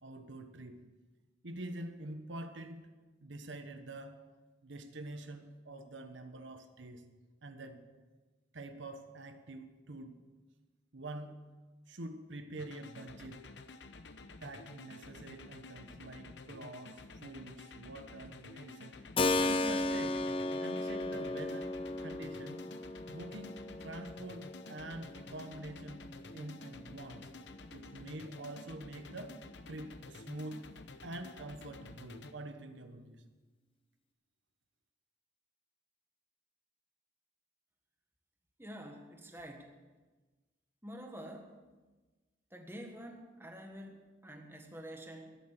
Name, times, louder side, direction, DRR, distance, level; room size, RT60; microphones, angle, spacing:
voice 1, 0.0-0.9 1.4-2.9 3.2-4.3 4.6-7.1 7.4-7.9 8.5-10.2 10.9-11.4 11.9-13.5 14.4-19.0 19.4-20.3 20.6-22.7 23.1-27.3 27.7-29.4 29.7-30.7 31.0-33.2, right 2 dB, 80° right, 7 dB, 1.1 m, -46 dB
sound 1, 12.6-32.3, left 3 dB, 65° left, 0.9 m, -51 dB
Keyboard (musical), 19.2-27.8, left 2 dB, 30° left, 0.5 m, -36 dB
voice 2, 38.6-39.7 40.8-41.5 42.5-45.3, equal, 10° right, 3 dB, 1.5 m, -48 dB
13.5 x 11.0 x 6.7 m, 1.3 s
head